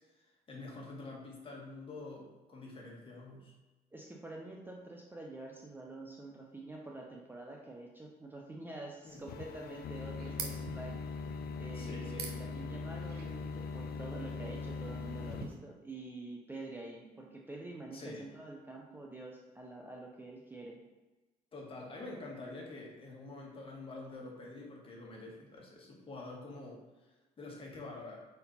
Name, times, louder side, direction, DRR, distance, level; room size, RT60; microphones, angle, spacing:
voice 1, 0.1-3.5 9.0-9.2 11.7-12.5 17.0-17.2 17.9-18.2 21.5-28.3, left 2 dB, 30° left, -2 dB, 1.8 m, -47 dB
voice 2, 3.9-11.0 11.6-20.8, right 2 dB, 10° right, -1 dB, 0.7 m, -47 dB
sound 1, 9.1-15.6, right 5 dB, 70° right, 1.0 m, -49 dB
sound 2, 9.3-15.4, left 4 dB, 65° left, 0.5 m, -41 dB
5.2 x 4.4 x 4.1 m, 1.2 s
cardioid pair, 110°, 17 cm